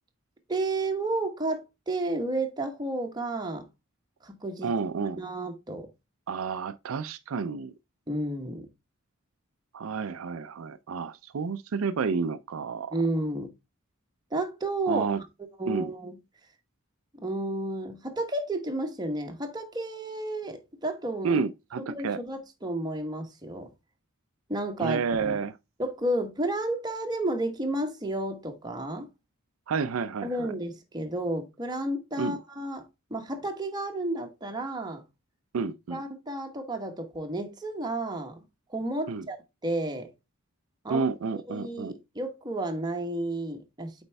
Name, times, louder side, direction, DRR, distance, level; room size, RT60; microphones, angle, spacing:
voice 1, 0.5-3.6 4.2-4.7 5.2-5.9 8.1-8.7 12.9-13.5 14.3-15.1 15.6-16.1 17.2-21.4 21.8-23.7 24.5-25.4 25.8-29.1 30.2-32.8 33.1-35.0 35.9-38.4 38.7-39.4 39.6-40.1 40.8-41.1 41.5-43.9, right 1 dB, 20° right, 1.1 m, -31 dB
voice 2, 4.6-5.2 6.3-7.7 9.7-12.9 14.9-15.2 15.7-15.9 21.2-22.2 24.8-25.5 29.7-30.5 32.2-32.4 35.5-36.0 39.1-39.2 40.9-41.9, right 5 dB, 80° right, 0.4 m, -30 dB
8.1 x 4.4 x 3.3 m
head